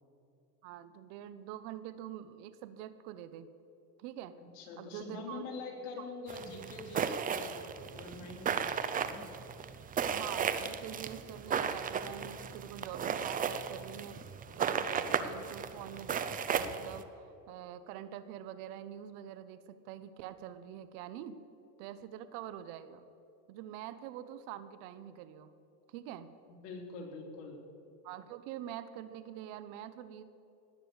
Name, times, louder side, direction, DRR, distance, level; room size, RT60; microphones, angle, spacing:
voice 1, 0.6-3.5 4.0-4.3 4.8-5.5 6.0-6.1 10.1-14.3 14.6-21.4 21.8-23.1 23.5-25.5 25.9-26.3 28.0-30.2, right 11 dB, 60° right, 13 dB, 1.1 m, -45 dB
voice 2, 4.4-9.2 26.6-27.6, left 3 dB, 65° left, 0 dB, 3.8 m, -45 dB
sound 1, 6.3-17.0, right 7 dB, 20° right, 0.5 m, -35 dB
18.5 x 6.9 x 8.0 m, 2.8 s
supercardioid pair, 130°, 48 cm